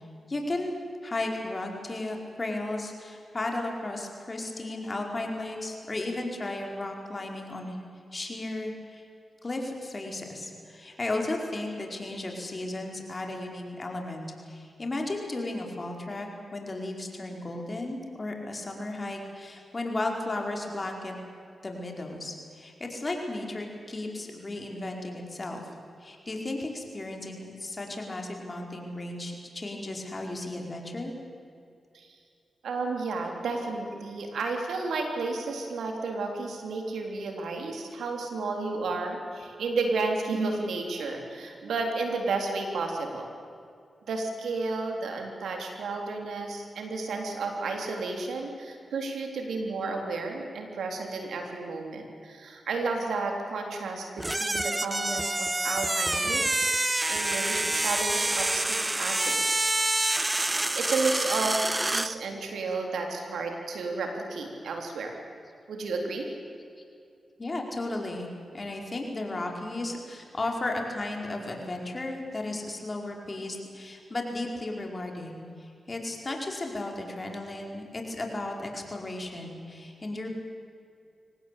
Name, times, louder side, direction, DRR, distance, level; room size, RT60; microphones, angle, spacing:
voice 1, 0.3-7.8 8.1-9.0 9.4-21.2 21.6-25.6 26.0-31.1 67.4-80.3, left 2 dB, 40° left, 2 dB, 5.0 m, -34 dB
voice 2, 32.6-43.3 44.1-56.7 57.1-59.7 60.8-65.2 65.7-66.3, right 3 dB, 85° right, 3 dB, 3.6 m, -32 dB
sound 1, 54.2-62.2, right 2 dB, 20° right, 0.6 m, -27 dB
24.5 x 18.5 x 8.5 m, 2.5 s
cardioid pair, 50°, 0 cm